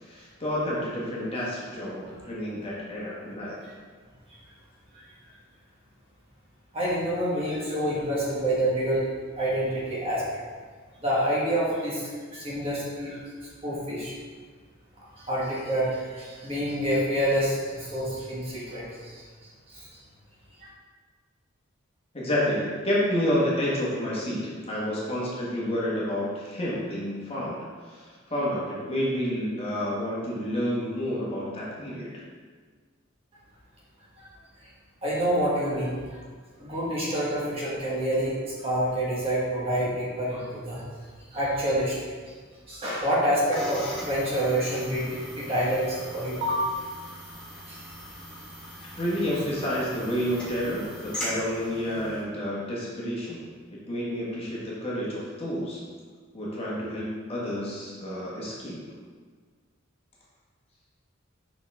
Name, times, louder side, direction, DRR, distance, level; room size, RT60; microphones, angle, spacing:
voice 1, 0.0-3.6 22.1-32.2 49.0-53.4 53.7-55.8 56.3-58.8, equal, 30° left, -6 dB, 1.2 m, -29 dB
voice 2, 6.7-9.0 9.4-10.4 11.0-14.1 15.1-19.2 19.7-19.9 34.2-34.3 35.0-36.2 36.6-40.8 41.3-42.1 42.7-46.7 47.7-47.8, equal, 30° right, -6 dB, 1.5 m, -27 dB
sound 1, 43.5-52.2, equal, 5° left, 1.8 m, -40 dB
5.5 x 5.4 x 3.5 m, 1.6 s
head